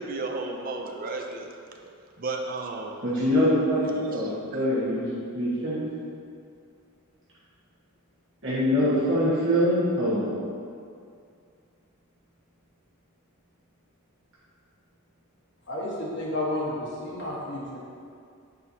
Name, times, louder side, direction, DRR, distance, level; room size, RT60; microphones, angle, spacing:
voice 1, 0.0-1.5 2.2-3.0 3.9-4.2 4.5-4.6, right 3 dB, 40° right, 2 dB, 0.5 m, -33 dB
voice 2, 3.0-5.1 5.3-5.8 8.4-10.3, equal, 55° right, -11 dB, 1.4 m, -24 dB
voice 3, 15.7-17.8, left 1 dB, 50° left, -7 dB, 1.4 m, -31 dB
7.9 x 4.4 x 2.8 m, 2.3 s
head